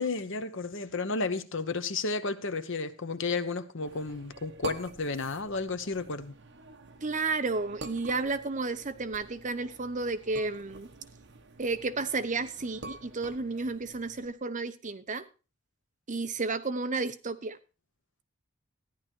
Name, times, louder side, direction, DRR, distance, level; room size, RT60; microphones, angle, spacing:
voice 1, 0.0-6.3, left 3 dB, 60° left, 1.1 m, -32 dB
sound 1, 3.9-14.3, right 3 dB, 60° right, 1.4 m, -47 dB
voice 2, 7.0-10.9 11.6-15.2 16.1-17.6, right 3 dB, 35° right, 0.9 m, -32 dB
14.5 x 10.5 x 4.5 m
head